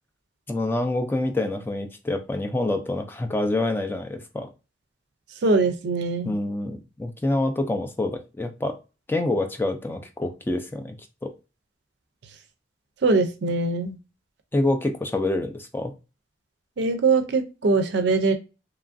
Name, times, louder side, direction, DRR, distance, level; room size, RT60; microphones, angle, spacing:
voice 1, 0.5-4.5 6.2-8.8 9.1-11.0 11.2-11.3 14.5-15.9, left 2 dB, 10° left, 6 dB, 0.3 m, -26 dB
voice 2, 5.4-6.3 13.0-14.0 16.8-18.3, right 3 dB, 60° right, 7 dB, 0.4 m, -22 dB
3.0 x 2.4 x 2.5 m, 0.29 s
head